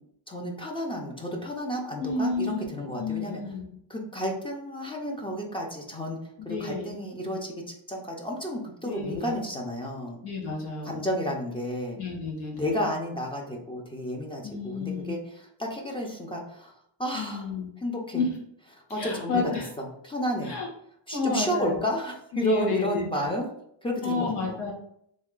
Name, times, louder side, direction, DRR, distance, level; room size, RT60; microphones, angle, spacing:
voice 1, 0.3-3.4 3.9-6.2 6.4-7.5 7.9-10.2 10.8-12.0 12.5-16.7 17.0-17.5 17.8-18.2 18.9-19.4 19.8-20.5 21.1-23.5 23.8-24.6, equal, 10° left, 0 dB, 0.5 m, -31 dB
voice 2, 2.0-2.6 2.9-3.7 6.4-6.9 8.8-9.4 10.2-11.1 12.0-12.7 14.4-15.2 17.1-17.7 18.1-18.3 18.9-19.7 20.4-20.7 21.1-21.8 22.3-23.3 24.0-24.7, left 4 dB, 85° left, -2 dB, 1.6 m, -30 dB
3.5 x 3.2 x 3.6 m, 0.72 s
cardioid pair, 155°, 48 cm